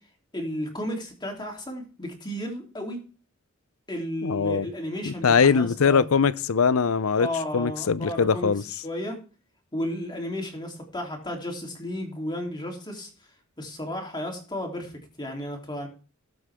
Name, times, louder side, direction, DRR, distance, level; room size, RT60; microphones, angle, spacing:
voice 1, 0.3-3.0 3.9-6.1 7.2-8.5 8.8-9.2 9.7-13.1 13.6-15.9, left 1 dB, 20° left, 3.3 m, -33 dB
voice 2, 4.2-4.7 5.1-7.3 7.5-8.6, left 5 dB, 75° left, 0.6 m, -21 dB
18.5 x 8.0 x 3.6 m
head